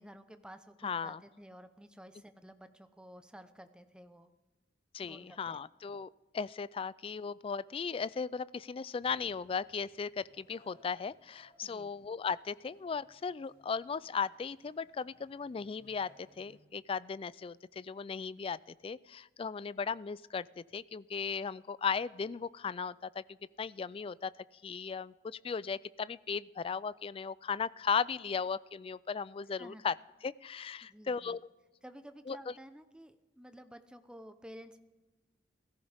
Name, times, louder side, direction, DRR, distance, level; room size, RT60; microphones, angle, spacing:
voice 1, 0.0-4.3 5.0-5.6 11.6-11.9 29.6-29.8 30.8-31.4 31.8-34.8, equal, 5° right, 9 dB, 0.8 m, -52 dB
voice 2, 0.8-1.2 4.9-23.2 23.6-24.3 24.6-29.9 30.2-31.5 32.3-32.5, left 6 dB, 30° left, 19 dB, 0.3 m, -37 dB
sound 1, 9.0-16.6, equal, 60° right, 5.1 m, -67 dB
17.0 x 14.5 x 3.5 m, 1.2 s
head